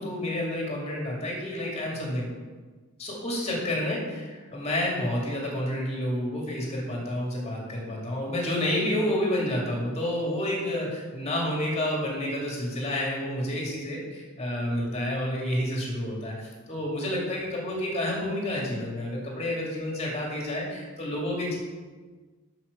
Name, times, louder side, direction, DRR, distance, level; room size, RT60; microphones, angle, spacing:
voice 1, 0.0-2.3 3.0-4.0 4.3-21.6, left 1 dB, 30° left, -3 dB, 2.1 m, -29 dB
5.9 x 5.9 x 6.5 m, 1.4 s
head